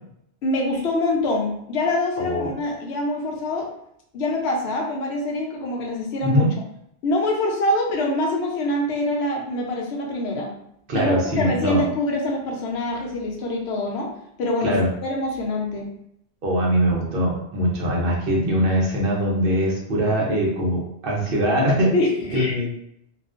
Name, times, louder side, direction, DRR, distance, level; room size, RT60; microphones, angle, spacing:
voice 1, 0.4-3.7 4.1-6.5 7.0-10.5 10.9-14.1 14.4-14.8 15.0-15.9 21.9-22.5, left 1 dB, 75° left, 0 dB, 0.8 m, -25 dB
voice 2, 2.2-2.5 6.2-6.5 10.9-11.8 14.6-14.9 16.4-21.9 22.3-22.7, equal, 60° right, -2 dB, 0.8 m, -22 dB
2.4 x 2.2 x 2.4 m, 0.76 s
omnidirectional pair, 1.1 m